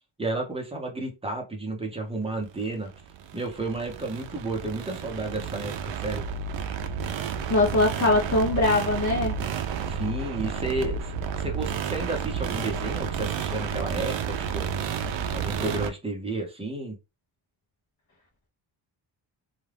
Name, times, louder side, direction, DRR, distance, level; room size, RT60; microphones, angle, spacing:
voice 1, 0.2-2.9 3.3-6.2 9.9-14.7 15.3-17.0, right 2 dB, 10° right, 0.7 m, -32 dB
sound 1, 2.6-15.9, right 7 dB, 65° right, 0.5 m, -31 dB
voice 2, 7.5-9.4, left 2 dB, 40° left, 0.7 m, -22 dB
2.4 x 2.2 x 3.3 m
wide cardioid pair, 145°, 49 cm